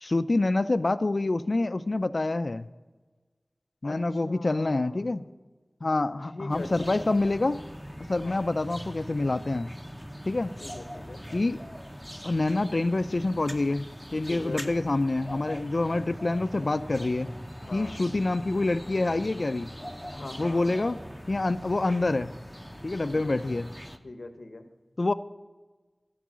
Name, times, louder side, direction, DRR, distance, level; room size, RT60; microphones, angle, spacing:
voice 1, 0.0-2.7 3.8-5.2 5.8-7.6 8.1-9.7 10.3-10.5 11.3-11.6 12.2-13.9 14.1-17.3 17.7-19.7 20.4-21.0 21.3-22.3 22.8-23.7 25.0-25.1, left 2 dB, 60° left, 13 dB, 0.3 m, -26 dB
voice 2, 3.8-5.1 6.3-7.1 8.2-8.5 10.6-11.2 14.3-14.7 17.6-17.9 20.1-21.0 23.1-23.4 24.0-24.7, left 2 dB, 90° left, 7 dB, 0.8 m, -41 dB
sound 1, 6.5-24.0, equal, ahead, 0.6 m, -42 dB
12.5 x 4.7 x 6.0 m, 1.3 s
wide cardioid pair, 55°, 0 cm